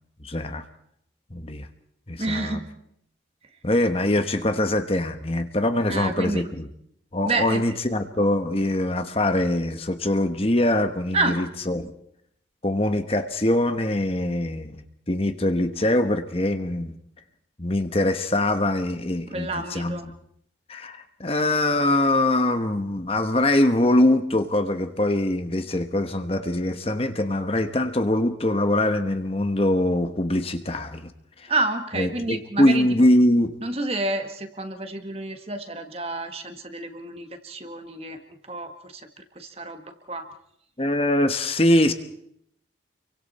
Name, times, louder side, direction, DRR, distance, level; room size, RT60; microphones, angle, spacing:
voice 1, 0.2-0.6 1.3-1.7 2.1-2.6 3.6-6.7 7.1-11.9 12.6-16.9 17.6-20.0 20.7-31.1 31.4-31.5 32.0-33.5 40.8-41.9, left 1 dB, 30° left, 8 dB, 1.2 m, -23 dB
voice 2, 2.2-2.7 5.9-6.5 7.2-7.6 11.1-11.4 19.3-20.1 31.5-32.9 33.6-40.3, right 2 dB, 35° right, 6 dB, 1.8 m, -29 dB
29.5 x 24.0 x 4.3 m, 0.72 s
head